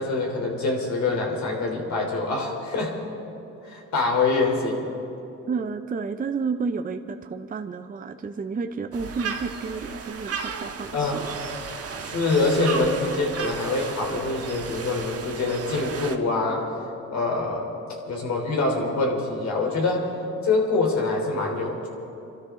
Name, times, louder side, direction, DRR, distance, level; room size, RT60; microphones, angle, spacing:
voice 1, 0.0-3.0 3.6-4.9 10.9-11.2 12.0-16.7 17.1-17.7 18.1-20.1 20.4-21.9, left 3 dB, 65° left, 0 dB, 3.7 m, -25 dB
voice 2, 5.5-11.3, right 5 dB, 30° right, 7 dB, 0.6 m, -31 dB
sound 1, 8.9-16.2, right 6 dB, 50° right, 1.4 m, -34 dB
27.0 x 13.0 x 3.8 m, 2.9 s
cardioid pair, 90°, 30 cm